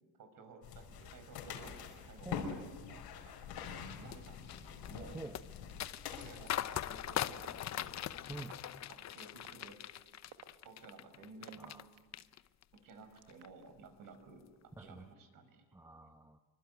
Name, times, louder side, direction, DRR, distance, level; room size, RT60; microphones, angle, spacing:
voice 1, 0.2-5.2 6.2-8.0 8.9-9.8 10.6-11.7 12.7-14.4 14.8-15.6, right 4 dB, 50° right, 8 dB, 5.3 m, -55 dB
sound 1, 0.6-8.4, left 7 dB, 70° left, 4.9 m, -46 dB
sound 2, 3.6-11.8 12.1-12.8 13.2-13.5, left 11 dB, 40° left, 0.8 m, -42 dB
sound 3, 5.9-6.0 6.7-6.8 7.4-7.7 8.4-8.7 9.4-9.5 10.2-12.2 12.9-13.7, right 14 dB, 80° right, 2.1 m, -54 dB
voice 2, 8.3-8.6 11.6-11.9 14.8-15.1 15.7-16.4, right 2 dB, 10° right, 8 dB, 1.0 m, -47 dB
26.0 x 24.5 x 9.2 m, 1.3 s
cardioid pair, 125°, 41 cm